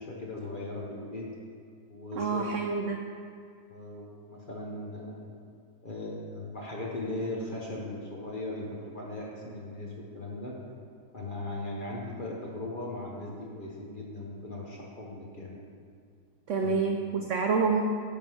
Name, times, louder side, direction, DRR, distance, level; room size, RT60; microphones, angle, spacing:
voice 1, 0.0-1.3 1.9-2.5 3.7-5.3 5.8-10.6 11.1-15.6 16.6-16.8, left 2 dB, 40° left, -3 dB, 0.8 m, -38 dB
voice 2, 2.1-3.1 16.5-17.9, right 4 dB, 80° right, 3 dB, 0.6 m, -27 dB
10.0 x 3.7 x 6.2 m, 2.3 s
omnidirectional pair, 1.9 m